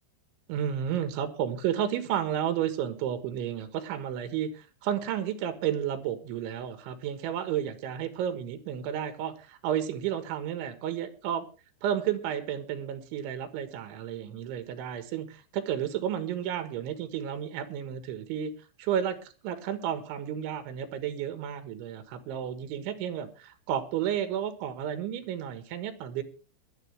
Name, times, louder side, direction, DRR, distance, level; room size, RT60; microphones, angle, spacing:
voice 1, 0.5-11.5 11.8-18.5 18.8-26.2, right 9 dB, 85° right, 10 dB, 3.8 m, -32 dB
20.0 x 12.0 x 3.4 m, 0.33 s
omnidirectional pair, 5.3 m